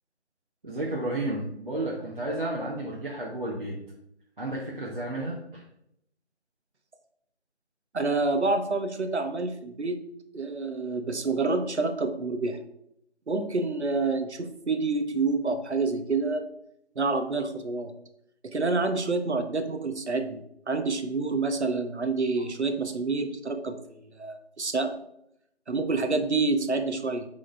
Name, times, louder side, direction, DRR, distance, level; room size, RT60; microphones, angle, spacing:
voice 1, 0.6-3.8 4.4-5.6, right 1 dB, 50° right, -5 dB, 1.2 m, -32 dB
voice 2, 7.9-10.0 10.3-12.6 13.3-16.4 17.0-17.9 18.4-24.9 25.7-27.3, right 3 dB, 80° right, 7 dB, 1.0 m, -28 dB
7.8 x 3.7 x 3.3 m, 0.76 s
figure-of-eight pair, 170°, 33 cm